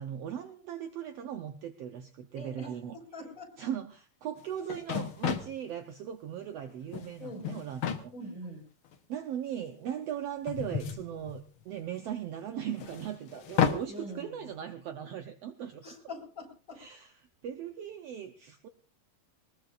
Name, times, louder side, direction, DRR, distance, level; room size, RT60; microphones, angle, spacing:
voice 1, 0.0-3.0 3.6-8.1 9.1-15.8 16.7-18.7, right 9 dB, 75° right, 8 dB, 1.4 m, -38 dB
voice 2, 2.3-2.7 3.1-3.5 7.2-7.6 8.1-8.6 13.9-14.3 15.8-16.9, left 1 dB, 20° left, 1 dB, 4.8 m, -43 dB
sound 1, 4.4-4.5 4.7-5.6 6.7-7.1 7.4-8.0 8.9-9.0 10.5-11.7 12.8-13.8, left 8 dB, 65° left, 1.3 m, -32 dB
22.0 x 20.5 x 2.5 m, 0.36 s
omnidirectional pair, 4.0 m